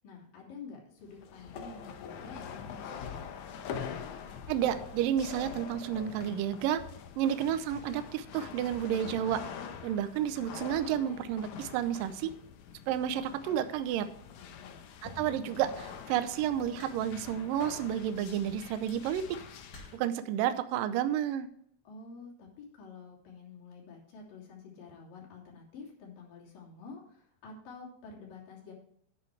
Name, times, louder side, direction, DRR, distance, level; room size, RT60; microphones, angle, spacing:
voice 1, 0.0-3.3 14.4-14.9 21.8-28.7, left 4 dB, 60° left, -2 dB, 4.5 m, -49 dB
sound 1, 1.0-20.0, left 7 dB, 75° left, 1.7 m, -44 dB
voice 2, 4.5-6.8 7.2-9.4 9.8-12.3 12.9-14.1 15.0-19.4 19.9-21.5, right 10 dB, 80° right, 11 dB, 2.1 m, -31 dB
sound 2, 16.8-17.3 18.5-18.8 19.7-20.2 21.2-21.5, left 1 dB, 30° left, 2.4 m, -54 dB
10.5 x 9.5 x 3.3 m, 0.68 s
omnidirectional pair, 4.7 m